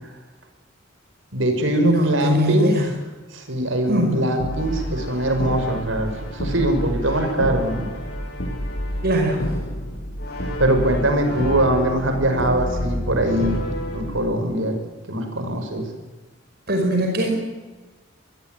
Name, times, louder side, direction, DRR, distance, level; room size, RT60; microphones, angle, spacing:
voice 1, 1.3-2.7 3.3-7.9 10.6-13.6 13.9-14.8 15.1-15.8, right 1 dB, 80° right, 6 dB, 5.8 m, -22 dB
voice 2, 1.8-2.9 3.9-4.2 9.0-9.4 16.7-17.3, equal, 55° right, 2 dB, 5.3 m, -21 dB
Brass instrument, 4.4-14.2, equal, 55° left, 7.9 m, -29 dB
24.0 x 21.0 x 9.3 m, 1.2 s
head